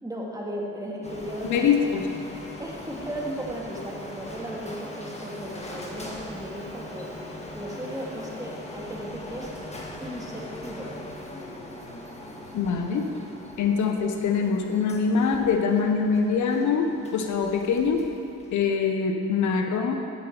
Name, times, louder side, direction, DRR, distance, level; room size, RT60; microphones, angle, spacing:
voice 1, 0.0-1.6 2.6-7.1 7.5-9.5 10.0-11.0, equal, 10° right, -2 dB, 1.9 m, -36 dB
Printer, 1.0-18.7, left 1 dB, 20° left, 1.5 m, -41 dB
voice 2, 1.4-2.1 12.5-13.1 13.6-18.0 18.5-20.0, left 5 dB, 75° left, 4 dB, 1.0 m, -24 dB
11.0 x 8.3 x 4.5 m, 2.6 s
cardioid pair, 90°, 30 cm